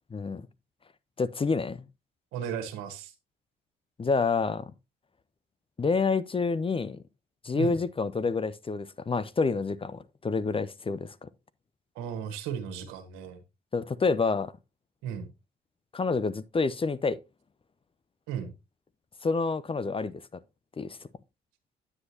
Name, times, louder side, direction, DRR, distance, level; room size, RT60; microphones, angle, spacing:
voice 1, 0.1-0.5 1.2-1.8 4.0-4.7 5.8-7.0 7.4-11.3 13.7-14.5 15.9-17.2 19.2-20.1 20.8-21.0, left 4 dB, 25° left, 0.5 m, -28 dB
voice 2, 2.3-3.1 7.5-7.8 11.9-13.4 15.0-15.3 18.3-18.5, right 8 dB, 80° right, 1.3 m, -35 dB
9.7 x 7.8 x 2.7 m
hypercardioid pair, 45°, 21 cm